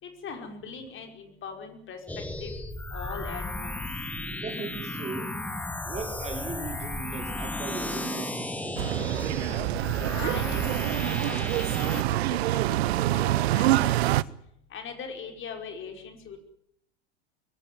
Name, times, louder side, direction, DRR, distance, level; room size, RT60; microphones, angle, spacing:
voice 1, 0.0-2.0 2.4-2.5 2.9-3.8 10.1-11.4 11.8-14.0 14.7-16.4, left 5 dB, 35° left, 5 dB, 5.2 m, -40 dB
sound 1, 2.1-12.0, left 1 dB, 5° left, 2.1 m, -34 dB
voice 2, 4.4-5.4 5.8-9.0 9.4-9.9, right 3 dB, 20° right, 4 dB, 5.6 m, -38 dB
sound 2, 8.8-14.2, right 16 dB, 65° right, 0.9 m, -26 dB
24.0 x 17.0 x 9.5 m, 0.72 s
hypercardioid pair, 85°, 33 cm